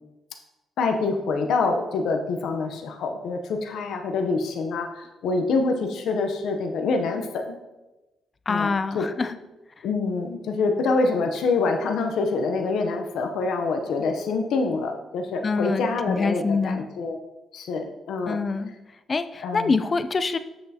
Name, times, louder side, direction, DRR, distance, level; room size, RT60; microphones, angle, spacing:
voice 1, 0.8-7.6 8.5-9.1 9.8-17.2 17.5-18.4 19.4-19.7, left 3 dB, 80° left, 4 dB, 0.7 m, -26 dB
voice 2, 8.5-9.4 15.4-16.9 18.3-18.7 19.1-20.4, left 4 dB, 35° left, 11 dB, 0.4 m, -25 dB
7.8 x 6.3 x 2.8 m, 1.1 s
cardioid pair, 105°, 0 cm